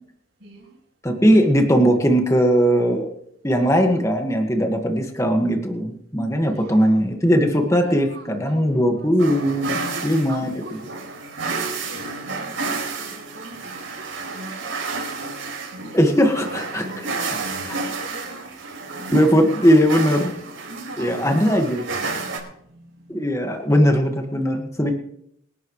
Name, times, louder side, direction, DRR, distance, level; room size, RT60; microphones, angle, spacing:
voice 1, 0.4-0.7 6.4-7.0 7.5-9.1 9.8-10.8 11.4-13.8 14.2-14.7 15.7-18.5 18.9-20.3 20.7-23.5 24.9-25.0, right 1 dB, 55° right, -4 dB, 7.7 m, -41 dB
voice 2, 1.0-3.1 3.4-10.5 15.9-16.9 19.1-20.3 21.0-21.8 23.1-24.9, equal, 15° left, 3 dB, 1.8 m, -19 dB
sound 1, 9.2-22.4, right 4 dB, 75° right, 5.3 m, -31 dB
27.0 x 12.0 x 3.3 m, 0.70 s
head